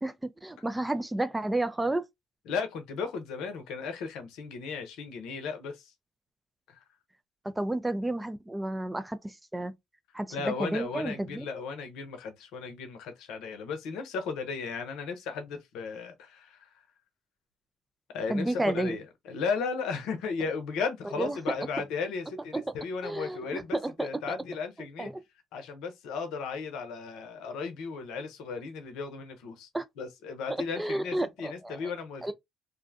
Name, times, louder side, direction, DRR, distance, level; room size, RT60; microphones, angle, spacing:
voice 1, 0.0-2.0 7.6-9.7 10.1-11.5 18.3-19.0 21.2-21.4 22.5-22.6 23.0-24.1 25.0-25.1 29.7-29.8 30.8-31.9 32.2-32.3, right 1 dB, 15° right, 0.4 m, -31 dB
voice 2, 2.5-5.9 6.7-6.8 10.3-16.7 18.1-25.1 25.5-29.7 30.0-32.2, left 5 dB, 75° left, 0.6 m, -35 dB
2.6 x 2.2 x 2.5 m
hypercardioid pair, 60°, 0 cm